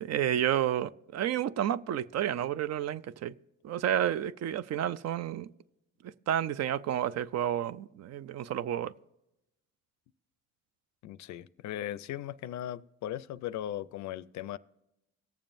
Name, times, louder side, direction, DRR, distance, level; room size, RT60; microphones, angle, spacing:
voice 1, 0.0-3.3 3.6-5.5 6.0-8.9, right 10 dB, 60° right, 0.5 m, -30 dB
voice 2, 11.0-14.6, left 12 dB, 70° left, 0.4 m, -38 dB
18.5 x 7.2 x 2.6 m
cardioid pair, 90°, 30 cm